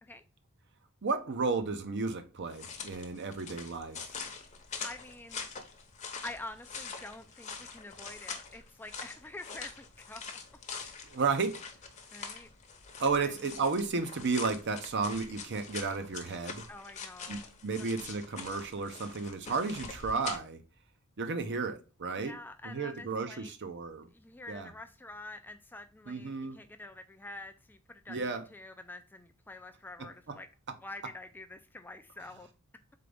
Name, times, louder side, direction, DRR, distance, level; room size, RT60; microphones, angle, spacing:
voice 1, 1.0-4.0 11.1-11.6 13.0-16.6 17.3-20.6 21.2-22.4 22.6-24.1 24.5-24.7 26.1-26.6 28.1-28.4, right 4 dB, 55° right, 0.6 m, -33 dB
sound 1, 2.5-20.4, left 5 dB, 35° left, 0.8 m, -44 dB
voice 2, 4.8-5.5 6.2-10.4 10.7-11.2 12.1-12.5 13.2-13.3 16.7-17.5 17.8-17.9 22.1-23.5 24.1-30.5 30.8-32.5, left 2 dB, 10° left, 0.3 m, -47 dB
3.8 x 3.8 x 3.4 m
head